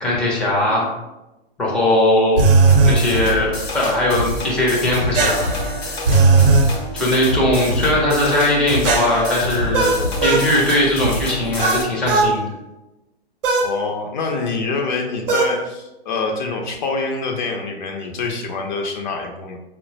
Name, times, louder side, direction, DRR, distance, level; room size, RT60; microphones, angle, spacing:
voice 1, 0.0-0.9 1.6-2.5 2.8-5.5 7.0-10.0 10.2-12.5, left 1 dB, 5° left, -4 dB, 0.5 m, -19 dB
sound 1, 2.4-3.0 5.1-6.7 8.8-10.5 11.6-12.3 13.4-13.7 15.3-15.6, right 4 dB, 60° right, 0.7 m, -16 dB
sound 2, 2.7-11.8, left 1 dB, 75° left, 0.8 m, -26 dB
voice 2, 13.6-19.6, left 3 dB, 50° left, 2 dB, 0.5 m, -25 dB
4.1 x 2.1 x 2.7 m, 0.97 s
figure-of-eight pair, 110°, 31 cm